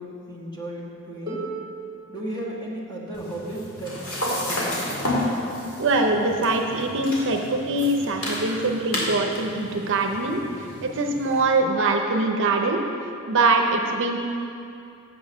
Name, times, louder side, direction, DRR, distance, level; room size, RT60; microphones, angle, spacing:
voice 1, 0.0-1.4 2.1-4.9, right 1 dB, 20° left, -5 dB, 1.5 m, -35 dB
Harp, 1.3-7.1 8.1-8.2, right 3 dB, 20° right, 1.7 m, -41 dB
sound 1, 3.1-11.4, left 1 dB, 80° left, 2.0 m, -31 dB
voice 2, 5.8-10.4 10.8-12.8 13.3-14.2, right 2 dB, 60° right, 3 dB, 0.6 m, -23 dB
7.4 x 6.2 x 6.1 m, 2.6 s
head